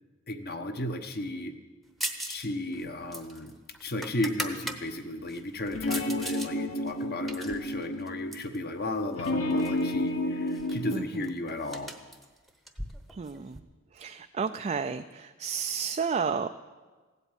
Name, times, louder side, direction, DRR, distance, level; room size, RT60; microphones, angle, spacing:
voice 1, 0.3-1.5 2.3-3.5 3.8-11.9, left 1 dB, 45° left, 7 dB, 1.1 m, -34 dB
sound 1, 2.0-2.5 2.7-4.8 5.3-6.5 6.9-8.6 9.2-9.8 10.1-10.2 10.5-13.6, right 1 dB, ahead, 0.9 m, -39 dB
sound 2, 5.7-8.1 9.1-10.9, left 1 dB, 65° left, 1.5 m, -30 dB
voice 2, 10.9-11.3 13.1-13.6 13.9-16.5, right 6 dB, 30° right, 7 dB, 0.4 m, -32 dB
16.0 x 8.3 x 9.0 m, 1.3 s
head